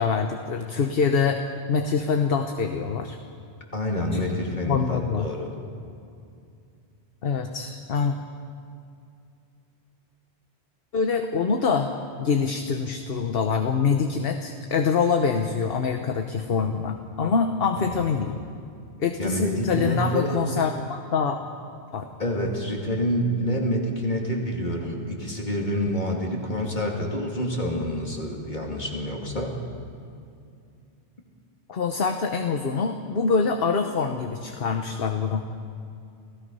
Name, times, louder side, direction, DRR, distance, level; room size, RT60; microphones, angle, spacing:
voice 1, 0.0-1.4 1.7-3.2 4.1-4.2 4.7-5.3 7.2-8.2 10.9-11.9 12.2-18.3 19.0-21.4 21.9-22.1 31.7-35.4, left 5 dB, 60° left, 5 dB, 1.1 m, -25 dB
voice 2, 3.7-5.5 17.8-18.0 19.2-20.4 22.2-29.5, equal, 45° left, 0 dB, 2.8 m, -27 dB
28.5 x 16.5 x 5.5 m, 2.5 s
omnidirectional pair, 1.1 m